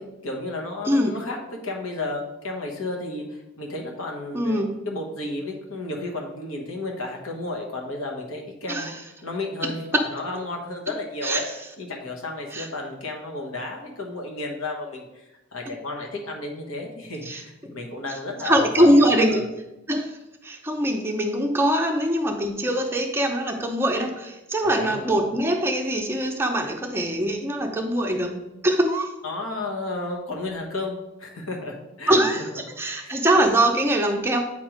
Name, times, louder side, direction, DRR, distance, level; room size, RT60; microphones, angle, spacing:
voice 1, 0.2-1.4 1.6-11.4 11.8-19.5 24.8-25.0 29.2-32.4 32.9-33.2, left 2 dB, 85° left, 1 dB, 1.3 m, -33 dB
voice 2, 4.3-4.8 8.7-8.9 9.9-10.0 11.2-11.4 12.5-12.7 17.3-17.4 18.4-19.4 19.9-20.2 20.4-29.1 32.1-32.4 32.8-34.4, right 1 dB, 10° right, 2 dB, 0.6 m, -22 dB
7.9 x 3.1 x 5.0 m, 0.94 s
head